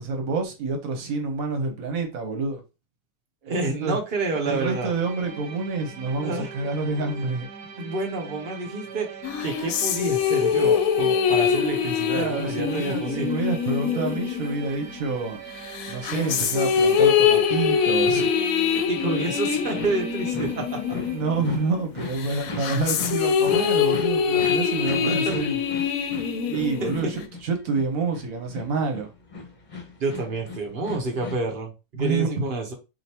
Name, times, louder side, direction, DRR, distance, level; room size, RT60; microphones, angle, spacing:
voice 1, 0.0-2.6 3.4-4.0 4.5-7.5 12.1-15.4 15.9-18.3 21.1-25.6 26.4-29.1 31.9-32.3, right 4 dB, 65° right, 1.4 m, -28 dB
voice 2, 3.5-4.9 6.2-6.5 7.8-13.3 18.9-20.8 25.1-25.3 26.8-27.1 30.0-32.7, right 3 dB, 40° right, 1.1 m, -29 dB
sound 1, 4.3-21.8, right 6 dB, 85° right, 1.2 m, -42 dB
sound 2, 9.2-15.2 15.7-21.7 22.1-27.2, left 7 dB, 70° left, 1.0 m, -24 dB
sound 3, 19.5-31.4, left 3 dB, 35° left, 1.0 m, -38 dB
5.0 x 2.8 x 2.9 m
omnidirectional pair, 1.6 m